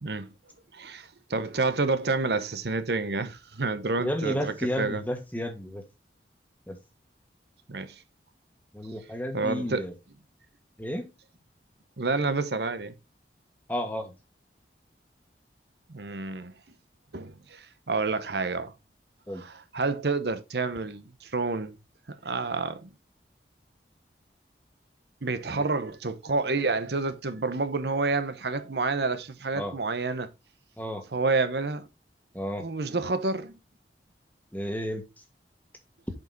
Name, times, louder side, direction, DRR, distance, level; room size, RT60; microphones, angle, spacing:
voice 1, 0.0-0.3 0.7-5.0 7.7-8.0 9.3-9.9 12.0-12.9 15.9-16.5 17.1-18.7 19.3-21.8 22.2-22.9 25.2-30.3 31.1-31.9 32.6-33.5, right 3 dB, 70° right, 0.9 m, -29 dB
voice 2, 4.0-5.8 6.7-6.8 8.7-9.9 10.8-11.1 13.7-14.1 19.3-19.4 29.5-29.7 30.8-31.0 32.3-32.6 34.5-35.0, equal, 10° left, 1.5 m, -32 dB
7.6 x 5.1 x 3.9 m
head